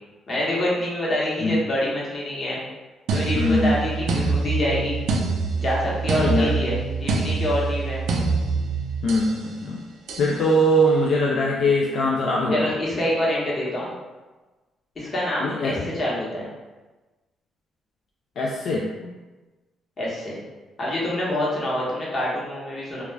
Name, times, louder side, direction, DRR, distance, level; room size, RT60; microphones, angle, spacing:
voice 1, 0.3-2.6 3.1-5.0 5.5-8.0 12.5-13.9 15.0-16.5 20.0-20.4 20.8-23.0, left 1 dB, 40° left, -6 dB, 1.0 m, -26 dB
sound 1, 3.1-9.4 10.1-10.4, right 4 dB, 80° right, 0.4 m, -25 dB
voice 2, 3.3-3.8 5.2-5.3 6.2-6.5 9.0-9.9 10.2-12.7 15.4-15.9 18.4-19.1, equal, 70° left, -2 dB, 0.3 m, -22 dB
2.3 x 2.2 x 3.2 m, 1.2 s
cardioid pair, 90°, 0 cm